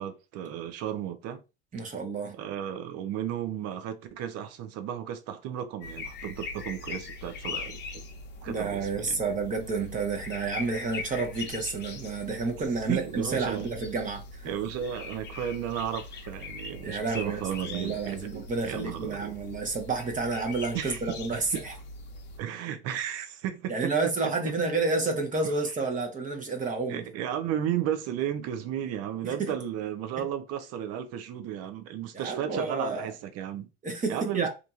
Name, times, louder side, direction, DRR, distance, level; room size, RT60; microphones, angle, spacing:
voice 1, 0.0-1.4 2.3-7.8 8.4-9.2 12.9-13.7 14.4-18.3 18.6-19.3 20.7-21.6 22.4-24.1 25.4-25.5 26.9-33.7 34.1-34.5, right 10 dB, 45° right, 0.6 m, -34 dB
voice 2, 1.7-2.3 8.5-14.5 16.8-21.7 23.7-27.0 29.2-29.5 30.2-30.3 32.1-33.1 33.8-34.5, right 3 dB, 25° right, 0.9 m, -30 dB
sound 1, 5.8-22.4, left 3 dB, 30° left, 0.7 m, -41 dB
3.0 x 2.5 x 2.4 m
hypercardioid pair, 100°, 34 cm